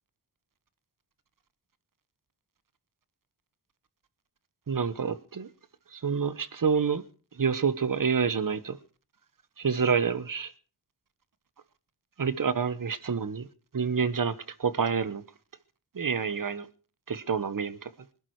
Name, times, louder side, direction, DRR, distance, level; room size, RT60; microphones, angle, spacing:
voice 1, 4.7-5.5 6.0-7.0 7.4-8.8 9.6-10.5 12.2-13.5 13.7-14.3 14.6-15.2 16.0-16.6 17.1-17.8, right 6 dB, 50° right, 1.2 m, -27 dB
21.0 x 11.0 x 4.8 m
cardioid pair, 50°, 43 cm